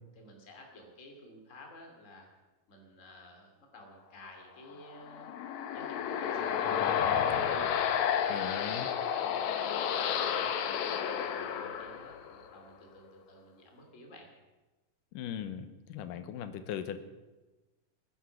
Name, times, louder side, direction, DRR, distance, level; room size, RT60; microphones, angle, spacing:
voice 1, 0.2-2.3 2.7-5.3 5.7-7.7 8.2-8.7 9.2-9.5 9.9-14.3, left 1 dB, 25° left, 2 dB, 2.6 m, -52 dB
sound 1, 4.9-12.5, left 8 dB, 70° left, 2.1 m, -31 dB
voice 2, 8.3-8.9 15.1-17.0, left 9 dB, 85° left, 11 dB, 2.5 m, -39 dB
18.0 x 10.0 x 7.1 m, 1.1 s
omnidirectional pair, 3.7 m